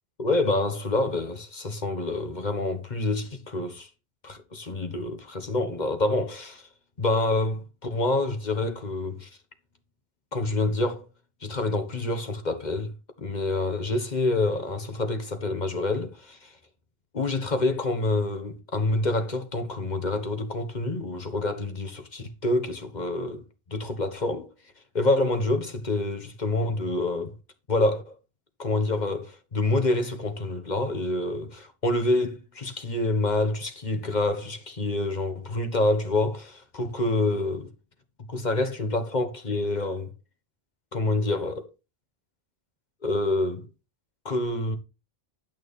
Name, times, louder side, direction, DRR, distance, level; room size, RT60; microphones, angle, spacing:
voice 1, 0.2-3.9 4.2-6.7 7.0-9.3 10.3-11.0 11.4-12.9 13.2-16.5 17.1-23.4 23.7-24.5 24.9-27.3 27.7-28.2 28.6-37.7 38.3-40.1 40.9-41.7 43.0-43.7 44.2-44.8, left 2 dB, 45° left, 1.6 m, -27 dB
11.0 x 6.2 x 4.2 m
omnidirectional pair, 1.1 m